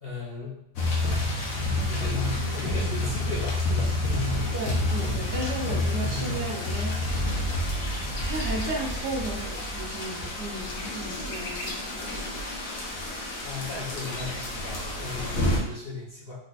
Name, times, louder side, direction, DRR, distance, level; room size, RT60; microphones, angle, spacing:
voice 1, 0.0-0.6 1.8-3.9 4.3-4.6 13.4-16.3, left 3 dB, 35° left, -8 dB, 1.3 m, -37 dB
sound 1, 0.8-15.6, left 2 dB, 55° left, 1.3 m, -29 dB
voice 2, 4.5-7.3 8.2-12.2, right 2 dB, 65° right, -3 dB, 1.5 m, -35 dB
5.2 x 3.9 x 2.6 m, 0.74 s
omnidirectional pair, 2.0 m